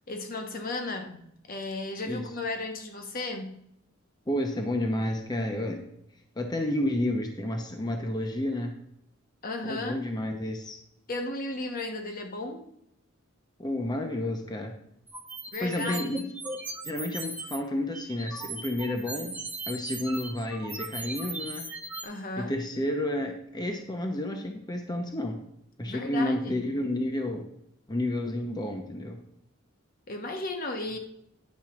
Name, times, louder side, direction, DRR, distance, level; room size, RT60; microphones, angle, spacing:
voice 1, 0.1-3.6 9.4-10.0 11.1-12.6 15.5-16.3 22.0-22.5 25.8-26.6 30.1-31.0, left 2 dB, 45° left, 4 dB, 1.0 m, -35 dB
voice 2, 4.3-5.8 6.4-8.7 9.6-10.8 13.6-14.7 15.6-16.2 16.8-19.3 19.7-21.7 22.4-25.4 25.8-27.4 27.9-29.2, left 1 dB, 20° left, 4 dB, 0.8 m, -30 dB
sound 1, 15.1-17.6 17.9-22.0, right 2 dB, 5° right, 1.2 m, -38 dB
10.5 x 4.5 x 5.9 m, 0.77 s
head